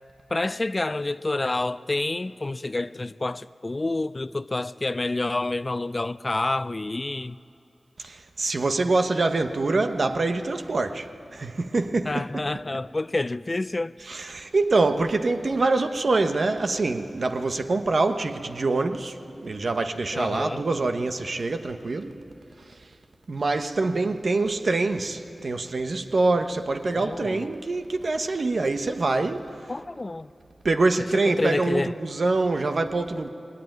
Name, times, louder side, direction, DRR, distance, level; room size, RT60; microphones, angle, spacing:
voice 1, 0.3-7.4 12.0-13.9 20.1-20.6 26.9-27.5 29.7-30.3 31.1-31.9, left 2 dB, 40° left, 0.4 m, -28 dB
voice 2, 8.0-12.4 14.1-22.2 23.3-29.5 30.6-33.3, right 3 dB, 65° right, 1.0 m, -25 dB
20.5 x 18.0 x 9.5 m
cardioid pair, 40°, 0 cm